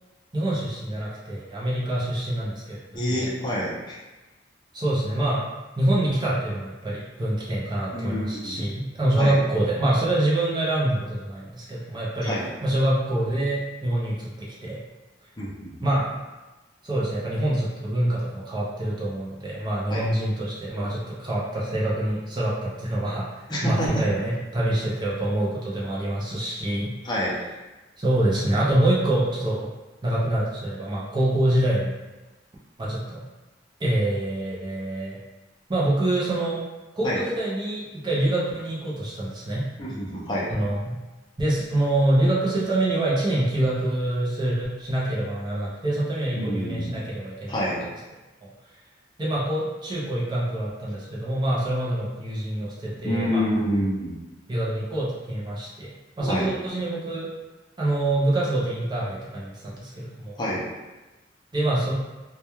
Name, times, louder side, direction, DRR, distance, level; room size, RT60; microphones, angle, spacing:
voice 1, 0.3-3.3 4.7-5.4 5.8-12.3 12.6-14.8 15.8-16.1 16.8-26.9 27.2-27.3 28.0-29.7 30.0-31.9 32.8-33.2 33.8-35.2 35.7-36.6 36.9-39.7 40.5-41.0 41.4-47.5 48.4-48.5 49.2-53.4 54.5-57.3 57.8-60.4 61.5-61.9, right 1 dB, 25° right, -6 dB, 0.5 m, -25 dB
voice 2, 2.9-4.0 7.9-8.6 9.2-9.4 12.2-12.5 15.4-15.9 19.9-20.0 23.5-24.0 27.0-27.4 37.0-37.2 39.8-40.5 46.3-47.0 47.5-47.8 53.0-54.2 56.3-56.5 60.4-60.6, equal, 25° left, -6 dB, 0.5 m, -27 dB
2.2 x 2.2 x 2.9 m, 1.1 s
head